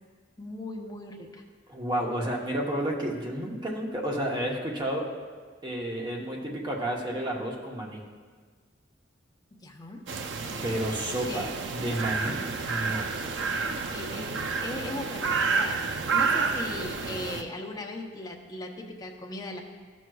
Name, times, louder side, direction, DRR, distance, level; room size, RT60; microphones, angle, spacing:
voice 1, 0.4-1.4 9.6-10.1 11.3-11.7 13.9-19.6, left 2 dB, 20° left, 1 dB, 0.7 m, -38 dB
voice 2, 1.7-5.1 5.6-8.0 10.6-13.1, right 1 dB, 25° right, -1 dB, 0.9 m, -31 dB
sound 1, 10.1-17.4, right 4 dB, 70° right, 0.5 m, -30 dB
12.5 x 6.2 x 2.3 m, 1.5 s
head